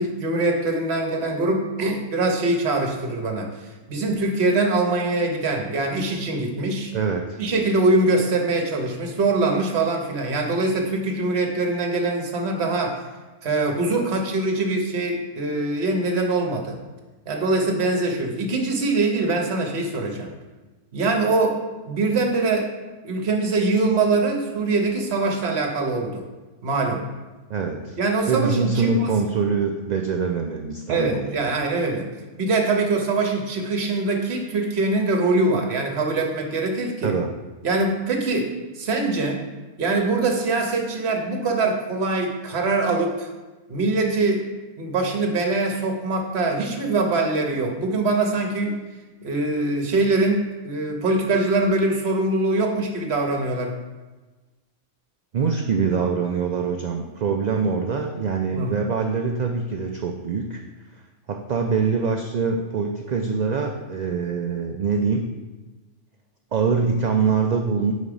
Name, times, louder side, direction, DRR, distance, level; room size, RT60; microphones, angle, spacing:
voice 1, 0.0-6.9 7.4-13.0 13.4-16.8 17.3-20.3 20.9-21.6 21.8-22.7 23.0-26.2 26.6-27.0 28.0-29.1 30.9-32.1 32.3-37.2 37.6-39.4 39.8-43.3 43.7-44.5 44.8-48.8 49.2-53.7 58.5-58.8, right 2 dB, 60° right, 2 dB, 1.2 m, -23 dB
voice 2, 6.9-7.4 27.5-28.0 28.3-31.5 37.0-37.3 55.3-60.6 61.3-65.2 66.5-67.9, right 5 dB, 90° right, 3 dB, 0.3 m, -24 dB
5.3 x 4.2 x 4.9 m, 1.2 s
omnidirectional pair, 1.3 m